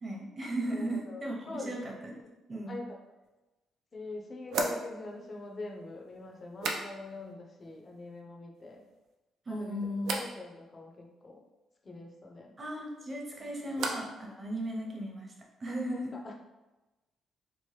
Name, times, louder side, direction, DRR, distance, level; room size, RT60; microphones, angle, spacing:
voice 1, 0.0-2.2 2.5-2.8 9.5-10.2 12.6-15.3 15.6-16.1, right 1 dB, 30° right, -1 dB, 0.7 m, -36 dB
voice 2, 0.7-2.3 2.7-3.0 3.9-8.8 9.5-11.4 11.8-12.5 13.4-13.7 14.4-14.5 15.7-16.4, left 2 dB, 35° left, 1 dB, 0.5 m, -44 dB
sound 1, 3.2-3.3 4.5-7.3 7.6-8.2 8.5-9.2 10.0-10.4 12.8-14.2 14.5-15.1, right 3 dB, 80° right, 0.4 m, -39 dB
3.0 x 2.1 x 3.1 m, 1.1 s
cardioid pair, 90°, 0 cm